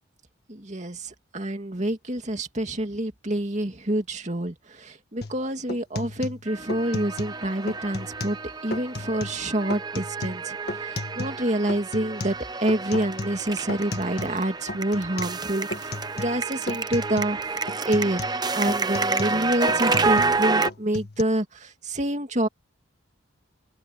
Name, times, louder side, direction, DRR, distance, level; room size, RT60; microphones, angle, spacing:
voice 1, 0.5-8.4 8.6-15.9 16.1-18.2 18.5-22.5, right 1 dB, 35° right, 2.4 m, -27 dB
sound 1, 5.2-5.4 5.7-7.4 7.7-8.4 8.7-9.4 9.7-11.4 11.7-14.4 14.7-15.4 15.7-16.4 16.7-17.4 17.7-20.4 20.7-21.2, left 2 dB, 50° left, 1.6 m, -35 dB
sound 2, 6.5-20.7, right 4 dB, 20° right, 0.8 m, -29 dB
open air
head